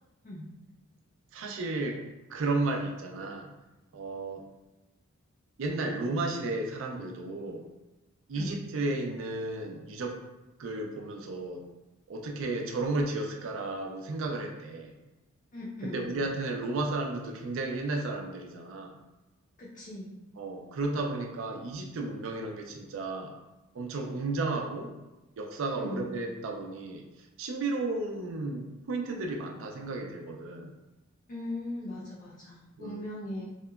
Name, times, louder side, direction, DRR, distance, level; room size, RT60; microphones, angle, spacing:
voice 1, 1.3-2.0 2.3-3.5 3.9-4.4 5.6-7.7 8.3-10.2 10.6-11.6 12.1-15.0 15.8-19.0 20.4-23.3 23.7-24.9 25.4-30.7 32.8-33.0, right 2 dB, 60° right, 2 dB, 0.4 m, -33 dB
voice 2, 15.5-16.1 19.6-20.1 25.8-26.1 31.3-33.4, left 1 dB, 35° left, -6 dB, 0.4 m, -39 dB
2.8 x 2.1 x 2.3 m, 1.0 s
head